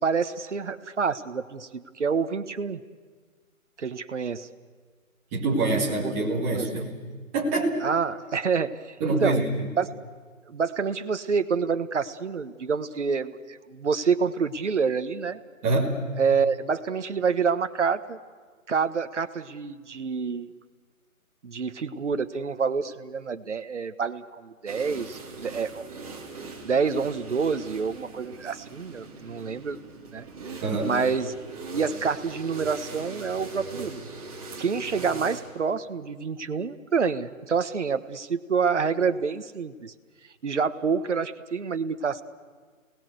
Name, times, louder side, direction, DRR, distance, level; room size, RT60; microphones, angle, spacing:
voice 1, 0.0-2.8 3.8-4.5 5.5-6.1 6.5-6.8 7.8-9.4 9.8-9.9 10.5-15.4 16.2-18.2 18.7-20.5 21.4-25.9 26.6-29.8 30.1-30.3 30.8-31.4 31.7-34.1 34.6-39.9 40.4-42.2, right 5 dB, 55° right, 10 dB, 1.4 m, -27 dB
voice 2, 5.3-6.9 7.3-7.8 9.0-9.7 15.6-16.0 30.6-30.9, right 2 dB, 10° right, -4 dB, 2.1 m, -25 dB
sound 1, 24.6-35.4, right 4 dB, 25° right, 3.3 m, -40 dB
29.5 x 19.0 x 7.9 m, 1.6 s
hypercardioid pair, 170°, 43 cm